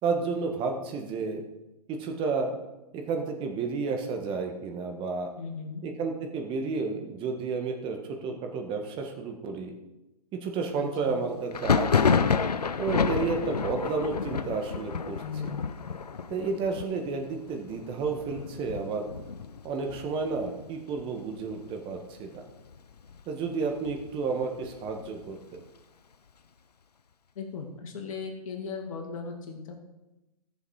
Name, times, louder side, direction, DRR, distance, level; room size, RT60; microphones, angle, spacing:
voice 1, 0.0-1.4 1.9-2.5 2.9-5.3 5.8-9.7 10.3-12.2 12.8-15.5 16.3-19.1 19.6-22.4 23.3-25.6, right 4 dB, 25° right, 4 dB, 1.6 m, -31 dB
voice 2, 5.4-5.8 10.7-11.2 15.2-15.7 27.4-29.8, left 5 dB, 55° left, 1 dB, 2.6 m, -37 dB
Thunder, 11.5-21.0 21.3-22.0 22.2-23.2 23.6-25.3, left 6 dB, 85° left, 0.7 m, -30 dB
14.5 x 7.0 x 4.8 m, 0.99 s
hypercardioid pair, 125°, 20 cm